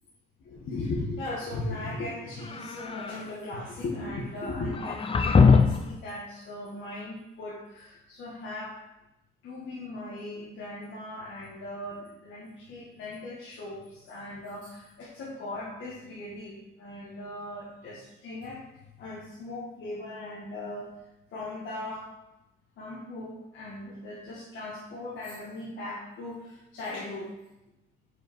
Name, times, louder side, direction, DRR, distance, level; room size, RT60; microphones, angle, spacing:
voice 1, 0.4-8.8 9.4-18.6 19.0-20.9 21.3-22.1 22.8-27.3, left 2 dB, 70° left, -7 dB, 1.6 m, -38 dB
sound 1, 2.4-3.3 4.7-6.0, left 5 dB, 30° left, 0.5 m, -22 dB
5.1 x 5.0 x 4.5 m, 0.93 s
cardioid pair, 90°, 20 cm